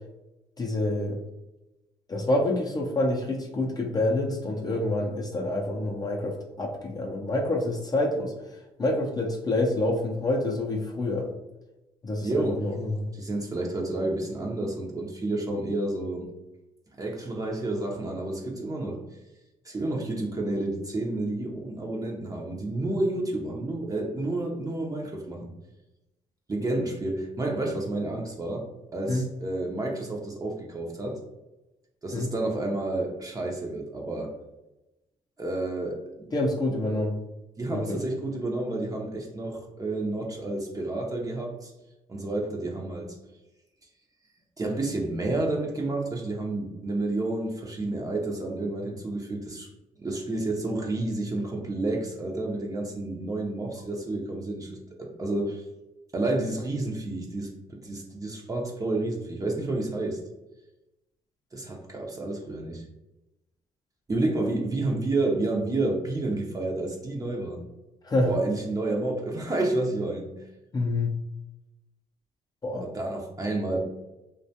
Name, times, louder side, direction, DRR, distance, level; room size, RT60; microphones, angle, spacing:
voice 1, 0.6-1.2 2.1-8.3 8.8-11.3 12.0-13.1 29.1-29.2 32.1-32.3 36.3-37.2 37.7-38.0 68.0-68.3 70.7-71.2 72.6-72.8, left 2 dB, 25° left, -1 dB, 0.4 m, -27 dB
voice 2, 12.2-12.7 13.1-16.3 17.0-19.0 19.6-25.5 26.5-31.2 32.0-34.3 35.4-36.3 37.6-41.7 42.1-43.1 44.6-49.7 50.0-55.6 56.1-60.2 61.5-62.8 64.1-67.7 68.2-70.3 72.8-73.9, right 2 dB, 25° right, 0 dB, 0.5 m, -30 dB
2.4 x 2.2 x 2.7 m, 0.98 s
supercardioid pair, 65°, 14 cm